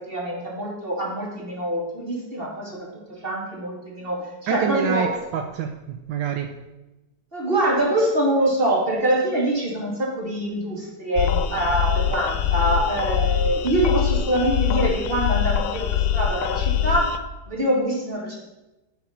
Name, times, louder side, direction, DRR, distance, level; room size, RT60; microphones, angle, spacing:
voice 1, 0.1-2.8 3.1-5.1 7.3-17.1 17.5-18.4, right 1 dB, 30° right, -3 dB, 2.4 m, -24 dB
voice 2, 4.5-6.5, right 8 dB, 80° right, 5 dB, 1.3 m, -26 dB
sound 1, 11.2-17.2, left 9 dB, 85° left, 1.3 m, -23 dB
10.5 x 4.3 x 5.6 m, 1.0 s
omnidirectional pair, 2.0 m